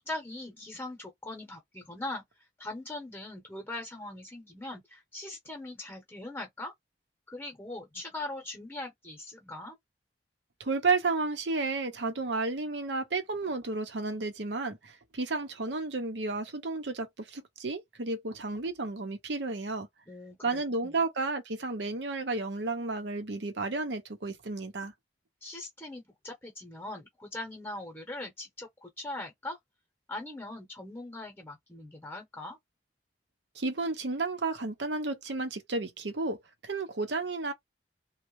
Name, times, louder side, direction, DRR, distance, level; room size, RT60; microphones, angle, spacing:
voice 1, 0.0-2.2 2.6-6.7 7.3-9.8 20.1-21.0 25.4-29.6 30.1-32.6, left 2 dB, 10° left, 0.9 m, -41 dB
voice 2, 10.6-19.9 20.4-24.9 33.5-36.4 36.6-37.5, right 3 dB, 90° right, 0.8 m, -32 dB
3.2 x 2.2 x 3.1 m
head